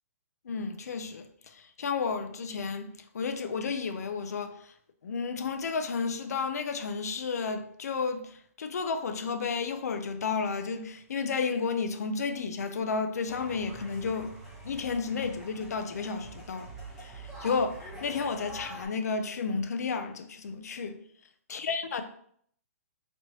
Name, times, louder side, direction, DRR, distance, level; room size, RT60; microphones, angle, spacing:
voice 1, 0.4-2.9 3.1-4.7 5.0-14.3 14.6-16.7 17.0-21.0 21.5-22.0, left 5 dB, 80° left, 0.6 m, -32 dB
sound 1, 13.3-18.9, right 1 dB, 5° right, 1.0 m, -45 dB
4.2 x 3.0 x 3.0 m
hypercardioid pair, 160°, 9 cm